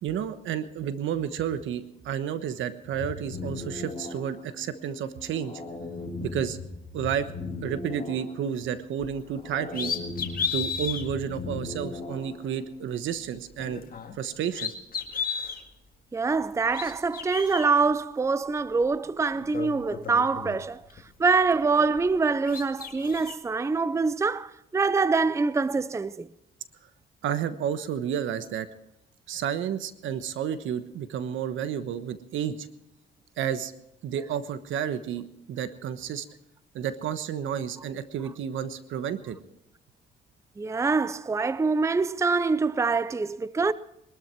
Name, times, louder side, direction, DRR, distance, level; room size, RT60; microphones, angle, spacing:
voice 1, 0.0-5.6 6.2-6.6 6.9-7.3 7.6-9.9 10.5-13.9 14.1-14.7 27.2-28.7 29.3-32.7 33.4-33.7 34.0-36.2 36.7-39.4, right 9 dB, 80° right, 1.2 m, -31 dB
sound 1, 2.8-12.8, left 3 dB, 30° left, 4.6 m, -38 dB
sound 2, 9.0-9.2 9.7-11.0 11.7-11.8 13.5-14.2 14.5-15.6 16.5-17.7 18.8-18.9 19.3-21.0 21.4-22.2 22.4-23.3, left 6 dB, 45° left, 1.9 m, -34 dB
voice 2, 16.1-20.8 21.2-26.3 40.6-43.7, right 4 dB, 15° right, 0.5 m, -25 dB
21.5 x 13.0 x 4.6 m
cardioid pair, 90°, 20 cm